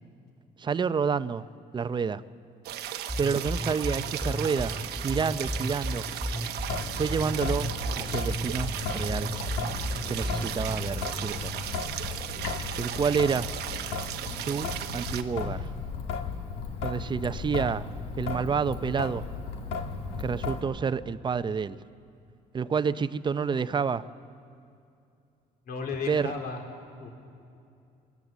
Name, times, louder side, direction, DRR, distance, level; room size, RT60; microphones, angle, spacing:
voice 1, 0.6-1.5 1.7-2.2 3.2-6.1 6.9-7.7 8.0-9.3 10.1-11.7 12.8-13.5 14.5-15.7 16.8-17.8 18.2-19.2 20.2-21.8 22.5-24.0 26.1-26.3, right 6 dB, 25° right, 13 dB, 0.6 m, -29 dB
sound 1, 2.6-15.2, right 11 dB, 75° right, 0.9 m, -36 dB
sound 2, 3.1-11.1, left 1 dB, 5° left, 2.1 m, -33 dB
Traffic noise roadway noise / Drip / Trickle dribble, 6.6-20.6, left 5 dB, 85° left, 1.8 m, -35 dB
voice 2, 25.7-26.6 27.0-27.1, left 5 dB, 60° left, 2 dB, 2.9 m, -35 dB
22.5 x 19.0 x 7.3 m, 2.6 s
cardioid pair, 110°, 17 cm